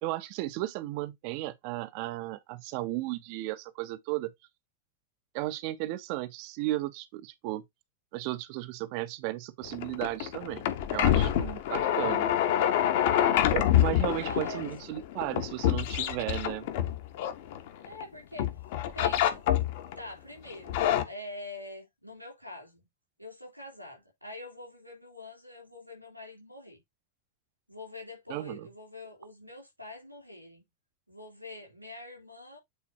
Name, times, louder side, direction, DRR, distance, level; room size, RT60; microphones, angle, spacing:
voice 1, 0.0-4.3 5.3-7.6 8.1-12.3 13.5-16.7 28.3-28.7, right 17 dB, 45° right, 0.6 m, -35 dB
sound 1, 9.6-18.0 18.4-20.0 20.5-21.0, left 11 dB, 50° left, 1.1 m, -27 dB
voice 2, 11.7-12.1 14.0-14.7 17.8-18.5 18.9-19.4 20.0-22.9 23.2-26.8 27.7-30.6 31.1-32.6, left 1 dB, 90° right, 3.6 m, -45 dB
8.6 x 4.1 x 2.8 m
figure-of-eight pair, 90°, 0 cm